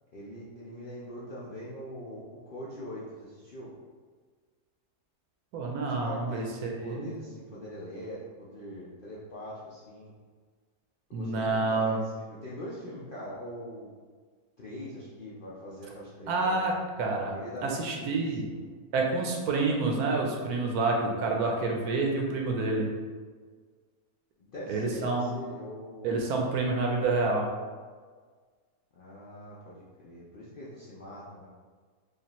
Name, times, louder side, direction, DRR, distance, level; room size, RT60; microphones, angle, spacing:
voice 1, 0.1-3.7 5.8-10.1 11.1-13.9 14.6-16.7 17.3-18.7 24.4-26.1 28.9-31.5, equal, 70° left, -7 dB, 0.5 m, -42 dB
voice 2, 5.5-7.1 11.1-12.0 16.3-16.7 17.0-17.3 17.6-18.4 18.9-22.9 24.7-25.3 26.0-27.5, right 3 dB, 75° right, 0 dB, 1.1 m, -28 dB
5.0 x 2.5 x 3.0 m, 1.5 s
omnidirectional pair, 1.7 m